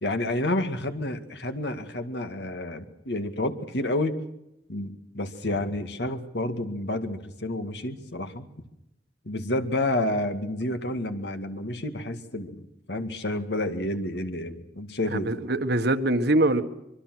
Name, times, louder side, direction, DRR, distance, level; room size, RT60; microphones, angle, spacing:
voice 1, 0.0-4.2 4.7-8.5 9.2-12.6 12.9-15.3, left 1 dB, 70° left, 2.2 m, -29 dB
voice 2, 15.1-16.6, right 1 dB, 65° right, 1.6 m, -23 dB
24.0 x 24.0 x 6.3 m
head